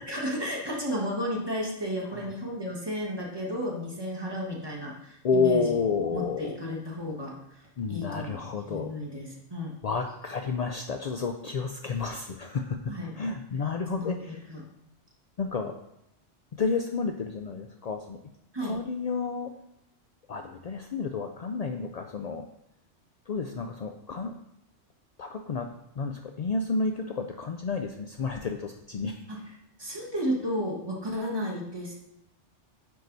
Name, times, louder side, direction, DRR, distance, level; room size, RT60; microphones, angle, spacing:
voice 1, 0.1-5.8 6.1-8.4 8.7-9.7 12.9-13.1 13.9-14.6 18.5-18.8 29.3-29.4 29.8-31.9, equal, 20° right, -2 dB, 1.5 m, -33 dB
voice 2, 5.2-6.6 7.8-8.9 9.8-14.4 15.4-15.8 16.5-18.2 18.6-19.5 20.3-22.5 23.3-24.3 25.2-25.7 26.0-29.2 29.5-29.6, left 4 dB, 65° left, 5 dB, 0.4 m, -30 dB
9.5 x 4.6 x 4.0 m, 0.80 s
omnidirectional pair, 1.2 m